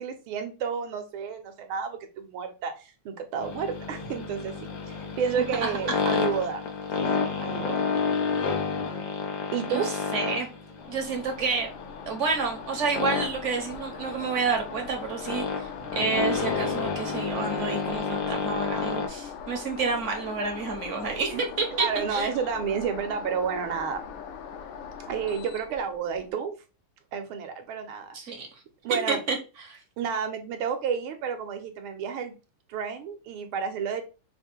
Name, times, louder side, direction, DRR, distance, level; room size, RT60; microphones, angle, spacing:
voice 1, 0.0-4.5 4.9-6.6 7.0-7.1 7.4-7.8 9.5-9.9 15.8-16.1 21.3-21.4 21.7-24.0 25.0-26.5 27.1-28.5 28.8-29.2 30.0-32.3 32.7-34.0, right 6 dB, 75° right, 6 dB, 1.6 m, -31 dB
sound 1, 3.4-19.1, left 5 dB, 90° left, 1.9 m, -30 dB
voice 2, 5.6-6.0 9.7-10.5 10.9-11.7 12.1-22.3 28.1-28.5 29.1-29.4 29.6-29.8, right 4 dB, 50° right, 3 dB, 0.9 m, -29 dB
sound 2, 10.8-26.3, left 7 dB, 70° left, 1.4 m, -41 dB
5.3 x 2.2 x 4.4 m, 0.31 s
omnidirectional pair, 2.4 m